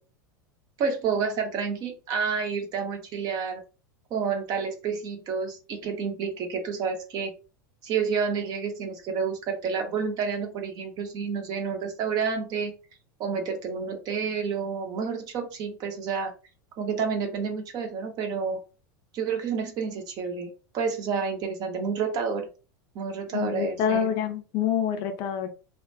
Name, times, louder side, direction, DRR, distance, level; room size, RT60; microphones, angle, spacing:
voice 1, 0.8-3.6 4.1-7.3 7.8-12.7 13.2-16.3 16.8-18.6 19.1-22.5 22.9-24.1, right 5 dB, 40° right, 0.7 m, -29 dB
voice 2, 23.3-25.5, left 8 dB, 45° left, 0.5 m, -26 dB
2.2 x 2.1 x 2.6 m
figure-of-eight pair, 80°, 11 cm